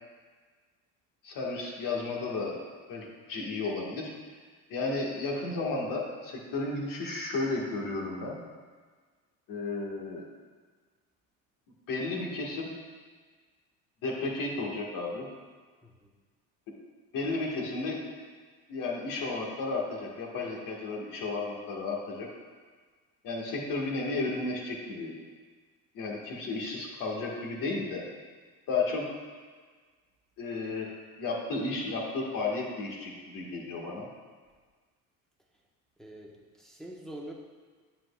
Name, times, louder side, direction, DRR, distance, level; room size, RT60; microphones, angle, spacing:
voice 1, 1.2-2.6 2.9-4.1 4.7-8.4 9.5-10.3 11.9-12.7 14.0-15.3 17.1-18.0 18.7-22.3 23.2-25.1 25.9-28.0 28.7-29.1 30.4-34.1, left 3 dB, 65° left, -2 dB, 1.7 m, -33 dB
voice 2, 36.0-37.3, right 1 dB, ahead, -3 dB, 1.0 m, -45 dB
7.7 x 7.6 x 2.3 m, 1.5 s
supercardioid pair, 95°, 36 cm